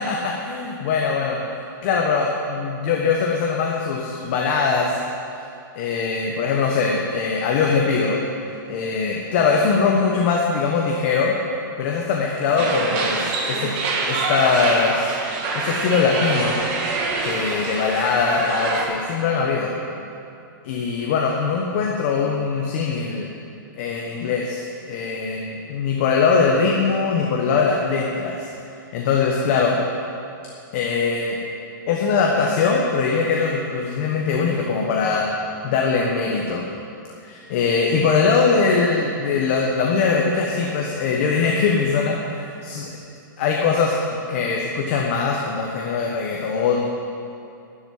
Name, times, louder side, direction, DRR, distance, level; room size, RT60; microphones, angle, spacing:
voice 1, 0.0-1.4 1.8-5.0 5.7-8.2 8.7-11.3 11.8-13.7 14.0-15.1 15.5-16.6 17.2-19.7 20.6-23.3 23.8-28.5 28.9-29.8 30.7-31.4 31.9-35.3 35.6-36.7 37.2-42.8 43.4-43.9 44.3-46.8, left 5 dB, 35° left, -1 dB, 1.3 m, -21 dB
sound 1, 12.6-18.8, right 3 dB, 30° right, 1.6 m, -25 dB
12.5 x 7.8 x 9.6 m, 2.6 s
hypercardioid pair, 175°, 11 cm